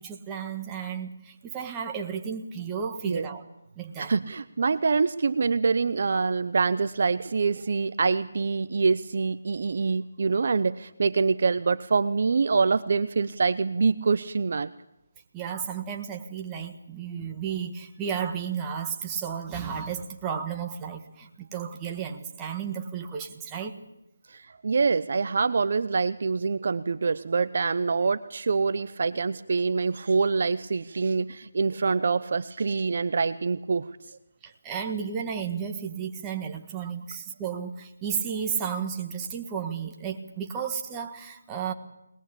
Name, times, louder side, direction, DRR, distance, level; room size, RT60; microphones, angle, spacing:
voice 1, 0.0-3.4 3.7-4.1 15.3-23.7 34.4-41.7, right 7 dB, 10° right, 2 dB, 1.6 m, -33 dB
voice 2, 4.0-14.7 24.3-33.9, right 4 dB, 50° right, 13 dB, 0.8 m, -25 dB
23.0 x 20.5 x 8.5 m, 0.86 s
figure-of-eight pair, 170°, 0 cm